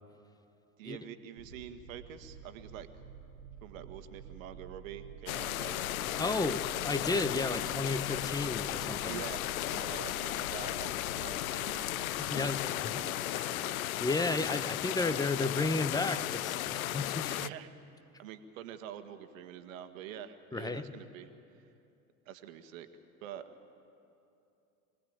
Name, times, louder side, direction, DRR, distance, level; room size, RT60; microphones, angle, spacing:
voice 1, 0.8-2.9 3.6-5.8 6.2-6.6 9.0-13.8 17.2-17.7 18.2-21.3 22.3-22.9 23.2-23.4, right 10 dB, 60° right, 9 dB, 1.7 m, -46 dB
sound 1, 1.4-14.4, right 7 dB, 80° right, 1.5 m, -50 dB
sound 2, 5.3-17.5, left 15 dB, 65° left, 0.6 m, -35 dB
voice 2, 6.2-9.2 12.2-13.0 14.0-17.3 20.5-20.9, left 3 dB, 10° left, 11 dB, 1.0 m, -33 dB
25.5 x 18.0 x 8.9 m, 2.7 s
figure-of-eight pair, 75°, 45 cm